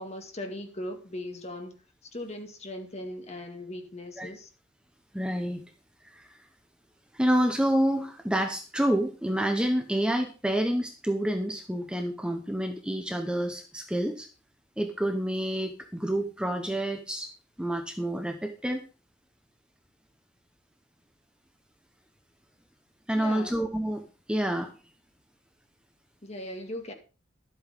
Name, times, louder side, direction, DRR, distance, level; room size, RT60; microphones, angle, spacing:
voice 1, 0.0-1.8 2.1-4.5 23.1-23.6 26.2-26.9, left 1 dB, 35° left, 4 dB, 2.2 m, -38 dB
voice 2, 5.1-5.6 6.1-6.3 7.1-14.3 14.8-17.3 17.6-18.8 23.1-24.7, right 1 dB, 5° right, 5 dB, 1.0 m, -28 dB
12.5 x 8.2 x 5.1 m, 0.34 s
head